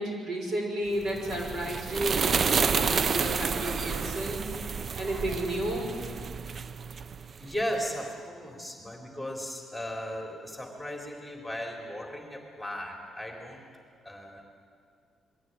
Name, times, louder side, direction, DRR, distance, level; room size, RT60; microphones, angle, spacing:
voice 1, 0.0-4.4 5.0-6.0, right 1 dB, 65° right, 1 dB, 5.9 m, -32 dB
sound 1, 1.0-7.6, right 5 dB, 45° right, 0.5 m, -30 dB
voice 2, 7.4-13.6 14.0-14.4, equal, ahead, 1 dB, 3.6 m, -36 dB
22.5 x 15.5 x 9.5 m, 2.1 s
cardioid pair, 90°, 0 cm